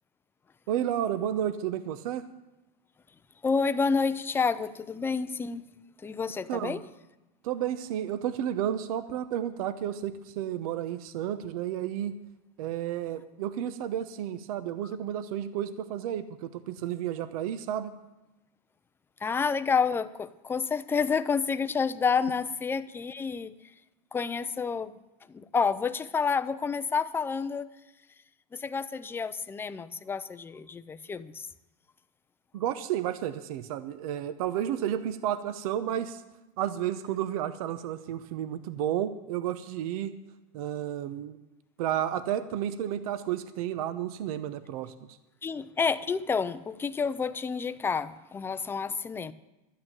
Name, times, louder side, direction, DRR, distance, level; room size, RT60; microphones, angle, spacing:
voice 1, 0.7-2.2 6.5-6.8 7.4-12.2 12.6-17.9 32.5-36.2 36.6-40.1 40.5-41.4 41.8-44.9, right 10 dB, 75° right, 12 dB, 0.9 m, -32 dB
voice 2, 3.4-5.6 6.0-6.8 19.2-23.5 24.1-24.9 25.3-27.7 28.5-31.5 45.4-49.3, left 5 dB, 10° left, 13 dB, 0.5 m, -29 dB
12.5 x 8.7 x 8.9 m, 1.0 s
supercardioid pair, 145°, 19 cm